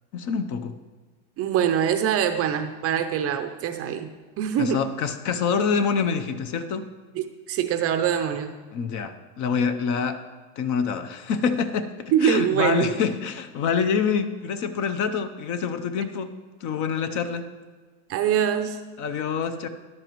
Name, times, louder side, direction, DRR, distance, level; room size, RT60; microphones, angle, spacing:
voice 1, 0.1-0.7 4.6-6.8 8.7-10.2 10.6-11.9 12.2-16.3 16.6-17.4 19.0-19.7, left 6 dB, 40° left, 10 dB, 0.7 m, -26 dB
voice 2, 1.4-4.1 4.4-4.8 7.2-8.5 12.1-13.0 18.1-18.8, right 8 dB, 30° right, 8 dB, 0.6 m, -24 dB
13.0 x 11.0 x 3.0 m, 1.4 s
supercardioid pair, 130°, 46 cm